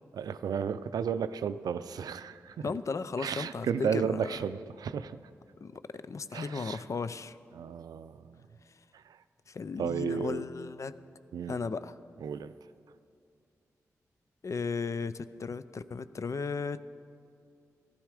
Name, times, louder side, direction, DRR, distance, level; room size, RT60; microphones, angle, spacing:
voice 1, 0.1-2.7 3.2-5.2 6.3-6.8 7.5-8.4 8.9-9.2 9.8-10.5 11.3-11.6 12.2-12.5, right 7 dB, 80° right, 13 dB, 0.4 m, -33 dB
voice 2, 2.6-4.3 5.6-7.4 9.5-10.9 11.5-11.9 14.4-16.8, left 4 dB, 55° left, 15 dB, 0.5 m, -35 dB
15.0 x 11.5 x 4.9 m, 2.4 s
cardioid pair, 45°, 6 cm